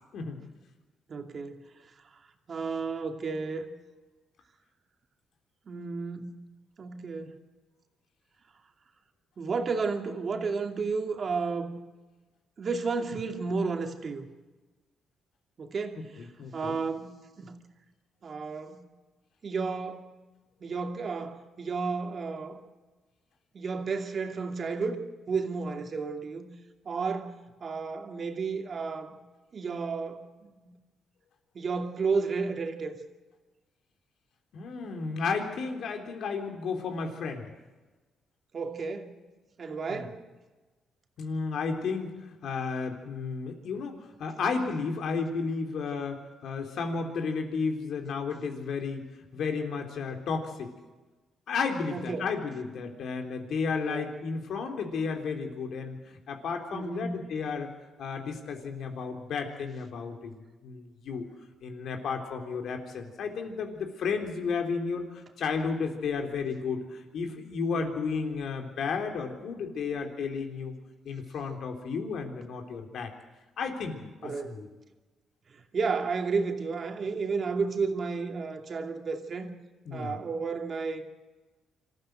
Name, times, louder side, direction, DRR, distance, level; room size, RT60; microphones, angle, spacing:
voice 1, 1.1-1.6 2.5-3.6 5.7-6.4 6.8-7.4 9.4-11.8 12.6-14.3 15.6-17.6 18.2-18.9 19.4-20.1 20.6-22.6 23.5-26.5 26.8-29.2 29.5-30.8 31.5-32.9 38.5-39.1 39.6-40.3 51.9-52.3 53.8-54.1 56.7-57.3 67.7-67.9 74.2-74.6 75.5-79.5 79.9-81.1, right 4 dB, 45° right, 4 dB, 2.6 m, -32 dB
voice 2, 16.4-16.8 34.5-37.5 39.9-40.0 41.2-49.0 49.3-50.7 51.5-57.7 58.0-60.3 60.6-61.2 61.6-70.7 71.1-73.1 73.6-74.7 79.9-80.2, left 5 dB, 70° left, 4 dB, 3.5 m, -33 dB
26.0 x 14.5 x 7.8 m, 1.2 s
cardioid pair, 90°, 0 cm